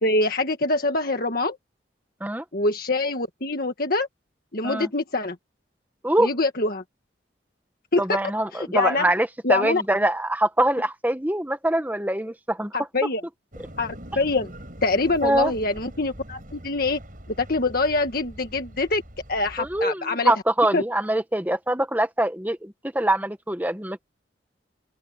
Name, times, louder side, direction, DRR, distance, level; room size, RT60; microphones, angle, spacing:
voice 1, 0.0-1.6 2.5-4.1 4.5-5.3 6.2-6.8 7.9-8.2 8.5-9.1 9.4-9.8 12.7-13.2 13.8-14.5 14.8-17.0 17.4-19.0 19.3-20.3 20.7-20.8, left 2 dB, 50° left, 1.7 m, -24 dB
voice 2, 8.0-12.7 15.2-15.5 19.6-24.1, right 1 dB, 10° right, 1.4 m, -24 dB
sound 1, 13.5-19.8, equal, 45° right, 7.0 m, -43 dB
open air
head